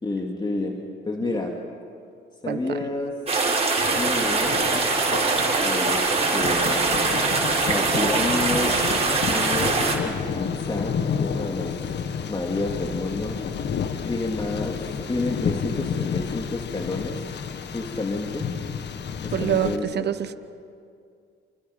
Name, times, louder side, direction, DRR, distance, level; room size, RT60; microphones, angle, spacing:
voice 1, 0.0-1.5 2.4-3.2 3.9-4.6 5.6-6.0 6.3-6.8 7.6-8.7 9.3-11.7 12.3-13.4 14.1-17.2 17.7-18.4 19.2-20.1, left 2 dB, 20° left, 0 dB, 2.9 m, -29 dB
sound 1, 3.3-10.0, right 3 dB, 30° right, 6.0 m, -22 dB
Thunder, 3.8-19.8, left 6 dB, 60° left, 1.6 m, -31 dB
voice 2, 19.3-20.4, right 10 dB, 55° right, 11 dB, 1.2 m, -25 dB
29.0 x 29.0 x 5.7 m, 2.4 s
cardioid pair, 90°, 20 cm